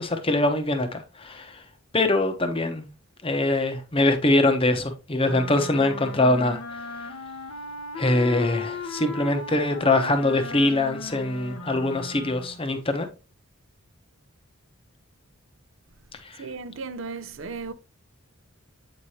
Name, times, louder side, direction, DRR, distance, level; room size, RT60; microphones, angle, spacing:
voice 1, 0.0-1.6 1.9-2.9 3.2-7.1 8.0-13.1 16.2-16.4, left 2 dB, 25° left, 0.8 m, -23 dB
Wind instrument woodwind instrument, 5.2-12.6, left 3 dB, 85° left, 1.0 m, -37 dB
voice 2, 16.4-17.7, right 4 dB, 60° right, 0.6 m, -35 dB
8.1 x 4.9 x 2.8 m
head